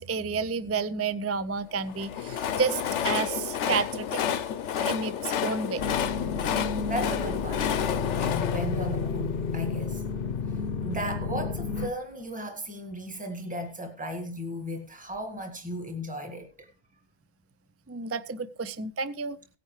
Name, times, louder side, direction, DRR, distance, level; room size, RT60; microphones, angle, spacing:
voice 1, 0.0-4.2 4.8-5.9 17.9-19.4, right 5 dB, 25° right, 0.3 m, -30 dB
Train, 1.8-10.0, left 8 dB, 90° left, 1.1 m, -31 dB
sound 1, 5.8-11.9, left 5 dB, 55° left, 0.9 m, -31 dB
voice 2, 6.3-6.6 6.9-7.7 8.2-10.0 10.5-16.7, equal, 5° right, 1.8 m, -36 dB
18.0 x 10.0 x 3.2 m
omnidirectional pair, 1.2 m